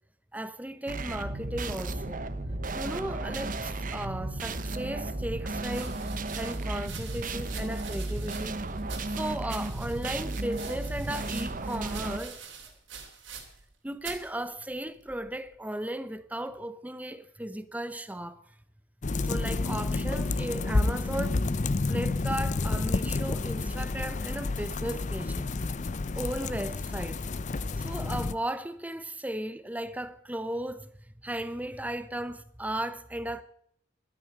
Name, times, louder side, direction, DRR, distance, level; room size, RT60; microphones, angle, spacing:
voice 1, 0.3-2.3 2.7-6.0 6.4-8.6 9.1-12.4 13.8-18.4 19.2-21.4 21.9-25.5 26.2-27.3 27.8-30.9 31.2-33.4, right 1 dB, 10° right, 0.8 m, -36 dB
sound 1, 0.9-12.2, right 2 dB, 40° right, 1.0 m, -34 dB
sound 2, 5.7-13.7 14.0-14.3 15.1-15.5, right 6 dB, 70° right, 3.3 m, -45 dB
sound 3, 19.0-28.3, left 3 dB, 35° left, 0.5 m, -30 dB
12.5 x 9.6 x 8.8 m
head